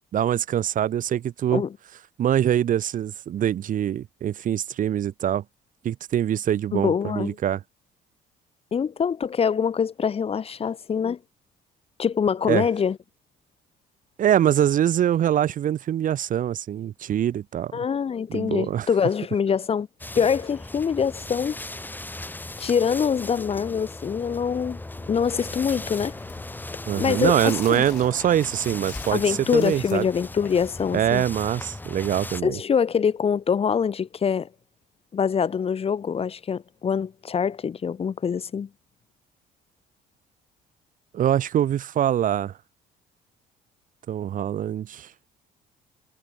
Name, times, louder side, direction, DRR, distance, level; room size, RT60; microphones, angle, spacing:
voice 1, 0.1-1.6 2.2-5.4 5.8-7.6 12.5-12.7 14.2-17.7 18.3-18.9 26.9-30.0 30.9-32.6 41.1-42.5 44.1-45.1, right 10 dB, 50° right, 1.2 m, -24 dB
voice 2, 6.7-7.3 8.7-11.2 12.0-13.0 17.7-19.9 20.1-21.6 22.6-24.8 25.1-26.1 27.0-27.8 29.1-31.2 32.4-34.5 35.1-38.7, left 7 dB, 35° left, 1.5 m, -24 dB
sound 1, 20.0-32.4, left 2 dB, 10° left, 4.2 m, -37 dB
Chewing mastication, 24.9-31.3, left 19 dB, 90° left, 7.8 m, -47 dB
cardioid pair, 110°, 17 cm